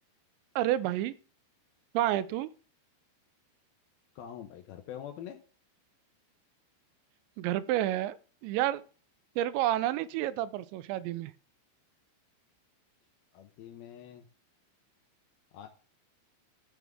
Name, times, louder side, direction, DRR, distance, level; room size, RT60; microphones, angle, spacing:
voice 1, 0.6-1.2 1.9-2.5 7.4-8.2 8.4-8.8 9.4-11.3, right 13 dB, 90° right, 2.9 m, -29 dB
voice 2, 4.2-5.4 13.3-14.3 15.5-15.7, left 10 dB, 75° left, 2.3 m, -44 dB
13.0 x 7.3 x 3.5 m
omnidirectional pair, 5.1 m